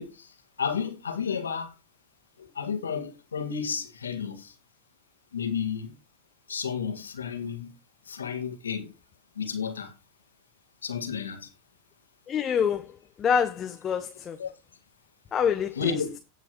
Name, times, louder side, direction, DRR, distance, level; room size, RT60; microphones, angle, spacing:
voice 1, 0.0-1.7 2.4-4.5 5.3-5.9 6.5-7.7 8.1-8.9 9.4-9.9 10.8-11.5 14.4-14.5 15.7-16.2, left 6 dB, 85° left, 1.9 m, -32 dB
voice 2, 12.3-12.8 13.2-14.4 15.3-15.9, left 7 dB, 30° left, 0.9 m, -26 dB
18.0 x 5.9 x 3.0 m
hypercardioid pair, 90°, 0 cm